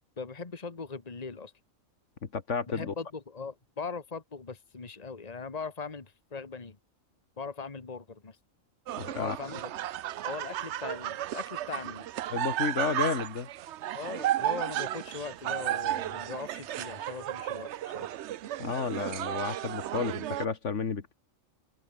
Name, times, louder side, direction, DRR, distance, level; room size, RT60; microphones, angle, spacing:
voice 1, 0.0-1.5 2.7-6.8 7.4-8.4 9.2-9.6 10.2-12.1 13.9-18.1, left 5 dB, 30° left, 1.8 m, -40 dB
voice 2, 2.2-2.9 9.0-9.6 12.3-13.5 18.6-21.1, left 5 dB, 65° left, 1.9 m, -32 dB
sound 1, 8.9-20.5, right 12 dB, 65° right, 0.8 m, -34 dB
open air
omnidirectional pair, 1.4 m